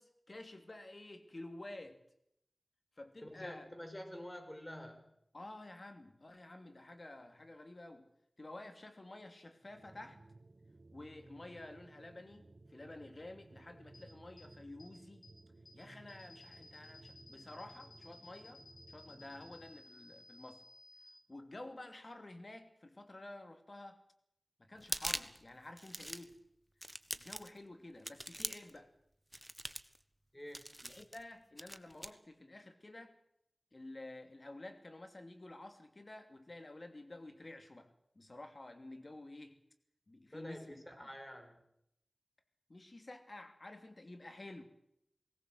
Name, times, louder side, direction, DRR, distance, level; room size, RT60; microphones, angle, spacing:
voice 1, 0.0-2.0 3.0-3.7 5.3-8.1 8.4-10.2 10.9-15.2 15.7-20.6 21.3-24.0 24.6-26.4 27.1-28.9 30.8-33.2 33.7-37.9 38.1-39.6 40.1-40.8 42.7-44.6, left 2 dB, 45° left, 7 dB, 2.8 m, -51 dB
voice 2, 3.2-5.1 30.3-30.6 40.3-41.6, left 1 dB, 15° left, 5 dB, 5.5 m, -48 dB
sound 1, 9.6-19.9, right 2 dB, 55° right, 1.3 m, -59 dB
sound 2, 13.9-14.0 14.4-14.5 14.8-14.9 15.2-15.3 15.6-15.7 16.1-21.1, left 3 dB, 85° left, 6.2 m, -58 dB
sound 3, 24.8-25.4 25.8-26.3 26.8-27.6 28.0-28.8 29.3-30.0 30.5-31.2 31.6-32.1, right 1 dB, 15° right, 1.3 m, -42 dB
19.5 x 18.5 x 8.0 m, 0.76 s
wide cardioid pair, 65°, 0 cm